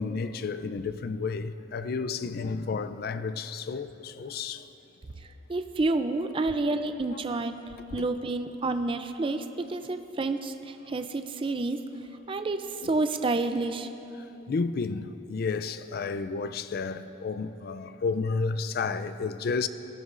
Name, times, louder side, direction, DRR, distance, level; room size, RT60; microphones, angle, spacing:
voice 1, 0.0-4.7 7.9-8.0 14.5-19.7, left 4 dB, 55° left, 0.4 m, -31 dB
voice 2, 5.2-7.5 7.9-11.8 12.3-13.9, right 2 dB, 30° right, 0.4 m, -29 dB
18.5 x 11.0 x 2.5 m
head